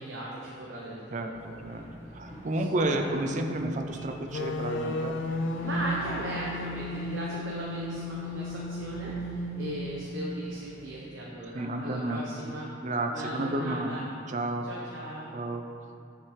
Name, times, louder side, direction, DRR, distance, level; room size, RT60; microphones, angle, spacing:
voice 1, 0.0-1.6 2.5-3.1 5.6-12.7 13.1-14.1 14.7-15.3, right 1 dB, 75° right, -5 dB, 0.8 m, -37 dB
sound 1, 1.3-10.9, equal, 35° left, 1.1 m, -49 dB
voice 2, 2.1-5.2 11.5-12.2 12.8-13.9 14.3-14.7 15.3-15.6, right 1 dB, 40° right, 5 dB, 0.4 m, -31 dB
sound 2, 4.3-10.4, left 1 dB, 70° left, 0.4 m, -34 dB
6.9 x 5.7 x 3.2 m, 2.5 s
head